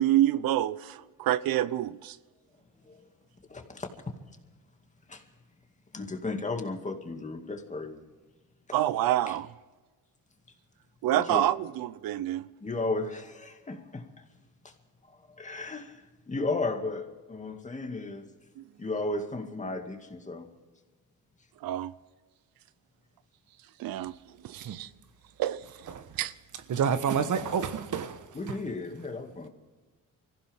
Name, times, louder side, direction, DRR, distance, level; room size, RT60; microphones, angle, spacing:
voice 1, 0.0-2.2 8.7-9.5 11.0-12.5 18.6-18.7 21.6-21.9 23.8-24.1 24.4-24.9 25.4-25.6 26.2-26.3, right 13 dB, 85° right, 0.7 m, -27 dB
voice 2, 3.5-4.1 5.1-5.2 5.9-8.1 9.3-9.4 11.2-11.4 12.6-14.2 14.6-14.7 15.1-18.2 18.8-20.5 28.3-29.5, left 3 dB, 20° left, 2.2 m, -35 dB
voice 3, 26.7-28.3, right 7 dB, 60° right, 1.3 m, -28 dB
24.5 x 15.5 x 3.6 m
cardioid pair, 110°, 34 cm